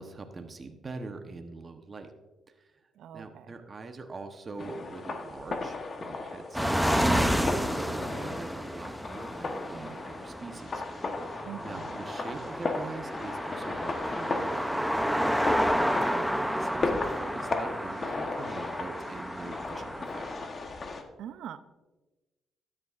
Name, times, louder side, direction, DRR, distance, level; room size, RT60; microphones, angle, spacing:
voice 1, 0.0-2.1 2.5-2.7 3.1-10.8 11.6-15.3 16.2-20.3, right 3 dB, 35° right, 6 dB, 0.9 m, -43 dB
voice 2, 3.0-3.5 7.7-8.3 11.4-12.0 16.1-16.5 21.2-21.6, right 9 dB, 75° right, 13 dB, 0.5 m, -44 dB
sound 1, 4.6-21.0, left 3 dB, 40° left, 1.1 m, -36 dB
sound 2, 6.5-20.5, equal, ahead, 0.6 m, -31 dB
13.0 x 9.9 x 2.5 m, 1.2 s
cardioid pair, 90°, 0 cm